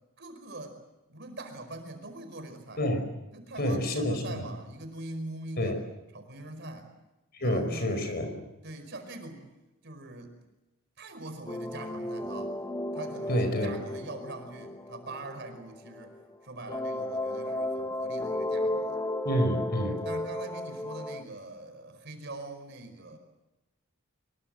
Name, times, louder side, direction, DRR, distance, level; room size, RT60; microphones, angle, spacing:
voice 1, 0.2-0.8 1.1-2.8 3.3-5.7 6.1-6.9 7.4-8.0 8.6-9.4 9.8-10.3 11.0-12.6 12.9-16.2 16.4-19.0 20.0-23.2, right 2 dB, 55° right, 7 dB, 5.0 m, -43 dB
voice 2, 3.6-4.4 5.6-5.8 7.4-8.4 13.3-13.7 19.2-20.0, equal, 50° left, 7 dB, 5.1 m, -28 dB
sound 1, 11.5-16.3 16.7-21.2, left 1 dB, 15° left, 1.2 m, -34 dB
25.0 x 22.5 x 7.8 m, 0.96 s
head